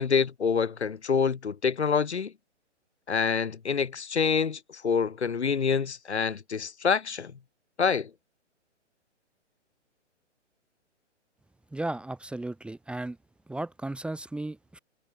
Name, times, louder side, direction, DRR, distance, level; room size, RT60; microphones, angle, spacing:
voice 1, 0.0-2.3 3.1-7.3 7.8-8.1, left 6 dB, 65° left, 3.5 m, -26 dB
voice 2, 11.7-13.2 13.5-14.8, right 2 dB, 5° right, 2.1 m, -35 dB
figure-of-eight pair, 125°, 36 cm